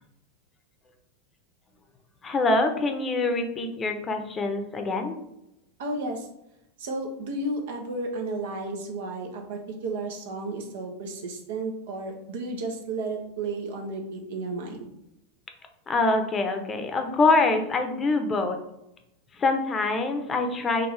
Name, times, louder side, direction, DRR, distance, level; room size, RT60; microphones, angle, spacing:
voice 1, 2.2-5.2 15.9-18.6 19.3-20.9, left 3 dB, 25° left, 6 dB, 0.7 m, -25 dB
voice 2, 5.8-6.3 6.8-14.9, right 2 dB, 75° right, 2 dB, 0.9 m, -33 dB
4.4 x 2.6 x 3.2 m, 0.83 s
hypercardioid pair, 105°, 0 cm